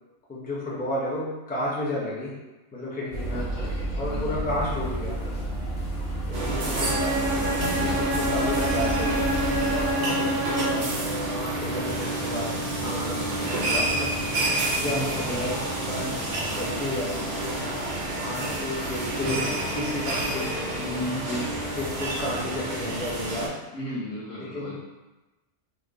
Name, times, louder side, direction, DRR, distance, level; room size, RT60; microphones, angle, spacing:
voice 1, 0.3-2.4 2.7-3.4 4.0-5.2 6.3-9.3 9.7-13.2 13.5-14.3 14.7-16.2 16.5-17.8 18.1-20.9 21.8-23.5 24.4-24.7, left 1 dB, 10° left, -5 dB, 0.4 m, -32 dB
sound 1, 3.1-9.9, equal, 50° left, 0.8 m, -31 dB
voice 2, 3.3-4.4 6.6-7.1 12.8-13.5 14.8-15.5 20.8-21.5 23.7-24.7, equal, 75° left, -10 dB, 1.1 m, -35 dB
sound 2, 6.3-23.5, right 1 dB, 45° right, 0.6 m, -29 dB
Bowed string instrument, 6.7-11.0, right 1 dB, 65° right, 1.0 m, -27 dB
3.1 x 2.1 x 3.8 m, 1.1 s
omnidirectional pair, 1.3 m